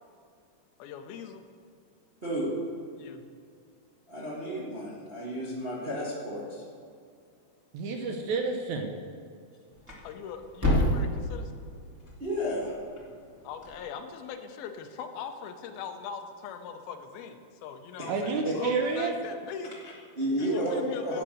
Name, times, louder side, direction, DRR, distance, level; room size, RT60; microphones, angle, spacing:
voice 1, 0.8-1.5 3.0-3.3 10.0-11.6 13.4-19.8 20.4-21.2, left 7 dB, 85° left, 7 dB, 2.7 m, -40 dB
voice 2, 4.1-6.6 9.9-10.0 12.2-12.7 18.4-18.5 19.8-21.2, equal, 35° right, -6 dB, 0.9 m, -32 dB
voice 3, 7.7-8.9 18.1-19.1, right 4 dB, 75° right, 4 dB, 1.8 m, -29 dB
Thump thud, 9.7-13.8, left 1 dB, 10° right, 1.2 m, -31 dB
11.0 x 8.5 x 6.4 m, 2.3 s
omnidirectional pair, 4.2 m